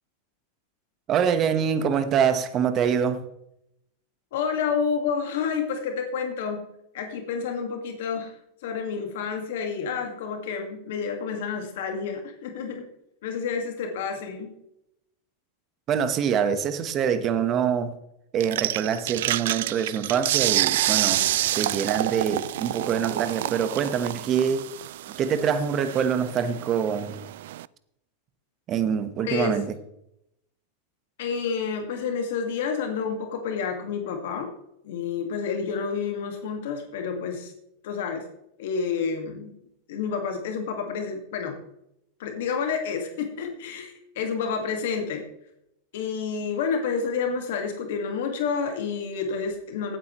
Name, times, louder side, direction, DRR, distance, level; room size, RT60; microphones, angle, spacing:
voice 1, 1.1-3.2 15.9-18.0 18.3-21.2 21.5-24.6 25.2-27.2 28.7-29.8, right 7 dB, 35° right, 1.2 m, -25 dB
voice 2, 4.3-6.6 6.9-8.4 8.6-12.9 13.2-14.5 21.1-21.5 29.2-29.6 31.2-34.5 34.8-37.5 37.8-38.2 38.6-39.5 39.9-41.6 42.2-45.2 45.9-50.0, left 6 dB, 75° left, 1.9 m, -29 dB
sound 1, 18.4-27.7, right 14 dB, 75° right, 0.3 m, -28 dB
15.5 x 9.0 x 3.1 m
supercardioid pair, 130°, 0 cm